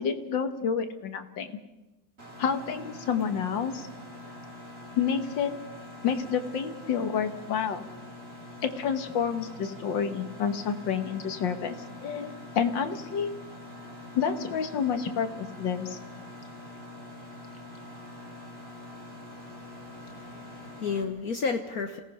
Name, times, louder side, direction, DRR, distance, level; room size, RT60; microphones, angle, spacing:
voice 1, 0.0-1.6 2.4-3.9 5.0-5.5 6.0-7.8 8.6-13.3 14.2-16.0, left 7 dB, 80° left, 8 dB, 2.0 m, -29 dB
Mechanisms, 2.2-21.0, left 1 dB, 30° right, 4.0 m, -44 dB
voice 2, 19.4-22.0, left 5 dB, 55° left, 5 dB, 1.4 m, -33 dB
28.0 x 17.5 x 5.6 m, 1.0 s
omnidirectional pair, 2.0 m